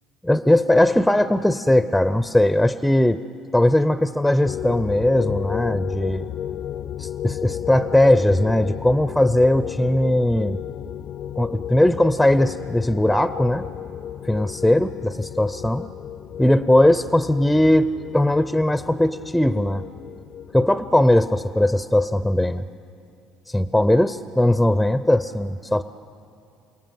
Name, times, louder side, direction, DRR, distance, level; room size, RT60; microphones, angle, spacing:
voice 1, 0.2-3.2 3.5-6.3 7.0-10.6 11.4-13.7 14.2-15.9 16.4-17.9 18.1-19.8 20.5-22.6 23.5-25.8, left 1 dB, 5° left, 13 dB, 0.5 m, -19 dB
sound 1, 4.4-21.1, left 10 dB, 55° left, 0.5 m, -33 dB
28.0 x 18.5 x 7.7 m, 2.5 s
cardioid pair, 130°, 0 cm